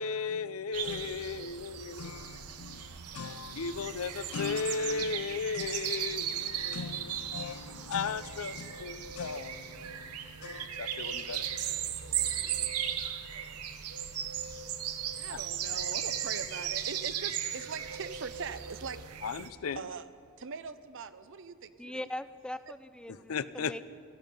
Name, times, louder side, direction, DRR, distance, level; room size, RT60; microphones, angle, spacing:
voice 1, 0.0-11.5 15.3-15.4 19.2-19.8 23.1-23.8, left 5 dB, 70° left, 15 dB, 0.5 m, -36 dB
sound 1, 0.7-19.5, right 9 dB, 85° right, 0.9 m, -37 dB
voice 2, 15.2-19.0 19.8-20.1 20.4-22.1 22.7-22.8, right 5 dB, 60° right, 13 dB, 0.7 m, -41 dB
voice 3, 21.8-23.8, left 1 dB, 5° left, 13 dB, 0.3 m, -41 dB
17.0 x 14.5 x 5.4 m, 2.3 s
head